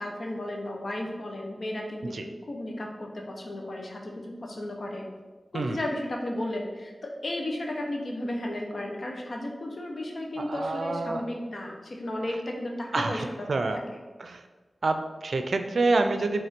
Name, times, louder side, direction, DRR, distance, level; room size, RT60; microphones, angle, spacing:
voice 1, 0.0-5.1 5.5-13.5 13.7-14.0, left 1 dB, 60° left, 1 dB, 1.1 m, -34 dB
voice 2, 10.4-11.2 12.9-13.8 14.2-14.4 14.8-16.4, right 3 dB, 75° right, 7 dB, 0.5 m, -27 dB
5.5 x 3.5 x 5.2 m, 1.3 s
wide cardioid pair, 85°, 0 cm